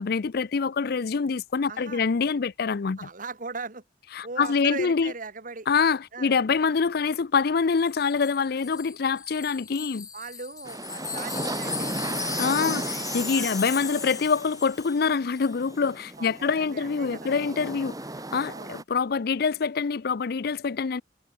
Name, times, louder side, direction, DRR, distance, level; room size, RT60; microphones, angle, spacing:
voice 1, 0.0-3.1 4.2-5.1 5.7-10.1 12.4-18.0 18.3-21.0, left 5 dB, 60° left, 0.5 m, -25 dB
voice 2, 1.7-2.1 3.0-3.8 4.2-5.7 6.1-6.3 10.1-12.4 13.3-13.5 16.2-17.3 18.5-18.7, right 4 dB, 50° right, 2.2 m, -39 dB
Wind chime, 7.9-15.1 15.3-15.5, left 6 dB, 20° left, 1.7 m, -36 dB
sound 1, 10.7-18.8, right 2 dB, 20° right, 2.1 m, -36 dB
head